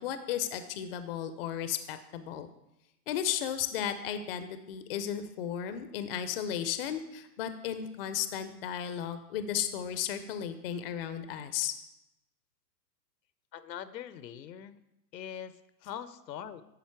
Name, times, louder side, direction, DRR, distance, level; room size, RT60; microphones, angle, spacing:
voice 1, 0.0-2.5 3.1-11.7, left 9 dB, 40° left, 10 dB, 0.5 m, -34 dB
voice 2, 13.5-14.8 15.1-16.6, left 9 dB, 80° left, 13 dB, 0.7 m, -42 dB
10.5 x 4.0 x 4.5 m, 0.89 s
hypercardioid pair, 130°, 50 cm